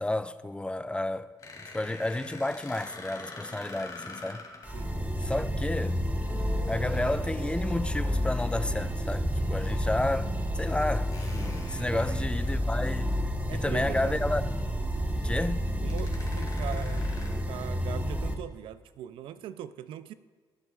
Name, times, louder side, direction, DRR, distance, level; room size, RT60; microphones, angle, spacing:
voice 1, 0.0-4.4 5.2-6.0 6.7-13.1 13.5-14.4 15.2-15.7, left 1 dB, 10° left, 0.4 m, -31 dB
sound 1, 1.4-4.7 6.8-7.0 8.7-8.8 9.7-9.8 11.1-12.9 13.4-13.6 13.9-14.0 15.5-15.6 15.9-17.3, left 3 dB, 45° left, 2.4 m, -46 dB
sound 2, 4.6-18.3, equal, 20° right, 1.3 m, -30 dB
Guitar, 5.7-5.8 6.3-10.4, right 1 dB, 50° right, 2.3 m, -47 dB
voice 2, 13.5-14.3 15.8-17.1 17.5-20.1, right 10 dB, 85° right, 0.4 m, -40 dB
18.5 x 8.0 x 2.4 m
cardioid pair, 65°, 8 cm